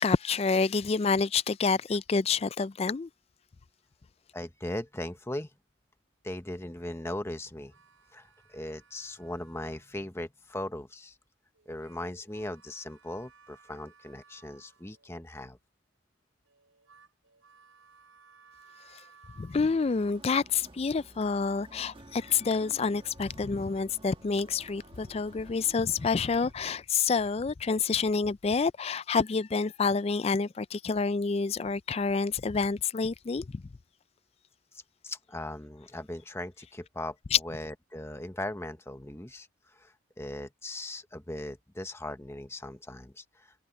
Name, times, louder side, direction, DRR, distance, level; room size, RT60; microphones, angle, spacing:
voice 1, 0.0-3.1 19.4-33.6 37.3-37.4, left 5 dB, 30° left, 0.3 m, -28 dB
voice 2, 4.3-5.5 6.2-7.7 8.1-11.2 11.7-15.6 34.7-37.2 37.4-43.5, left 1 dB, 10° left, 0.9 m, -39 dB
sound 1, 7.5-10.1 11.5-15.2 16.4-20.1, right 5 dB, 75° right, 6.8 m, -60 dB
sound 2, 19.5-26.5, right 1 dB, 25° right, 1.3 m, -53 dB
head